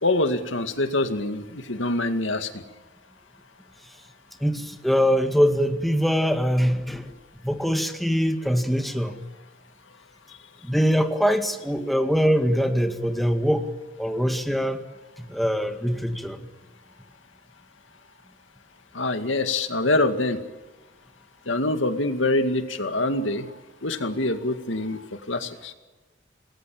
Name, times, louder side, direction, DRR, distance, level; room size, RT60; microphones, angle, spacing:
voice 1, 0.0-2.6 18.9-20.4 21.5-23.5 23.8-25.7, left 2 dB, 80° left, 7 dB, 2.2 m, -25 dB
voice 2, 4.4-7.1 7.4-9.2 10.6-13.7 14.0-14.8 15.2-16.5, equal, ahead, 5 dB, 2.0 m, -23 dB
27.5 x 20.5 x 7.3 m, 1.2 s
head